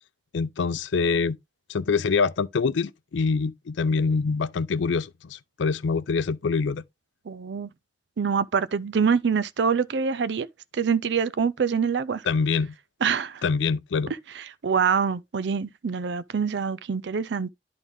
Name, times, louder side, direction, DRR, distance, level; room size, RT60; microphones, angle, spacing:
voice 1, 0.3-1.4 1.7-6.8 12.2-12.7 13.4-14.1, left 5 dB, 85° left, 0.5 m, -25 dB
voice 2, 7.3-7.7 8.2-10.5 10.7-12.2 13.0-13.4 14.6-17.5, right 6 dB, 75° right, 0.4 m, -25 dB
11.0 x 3.8 x 3.4 m
head